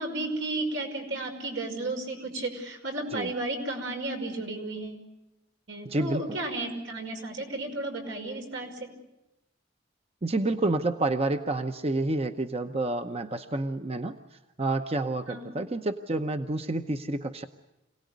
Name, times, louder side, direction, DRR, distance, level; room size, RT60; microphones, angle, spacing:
voice 1, 0.0-5.0 5.7-8.9 15.3-15.5, right 2 dB, 85° right, 3 dB, 5.6 m, -33 dB
voice 2, 5.8-6.4 10.2-14.2 14.6-17.5, right 2 dB, 35° right, 8 dB, 0.8 m, -29 dB
27.0 x 18.0 x 9.4 m, 0.96 s
head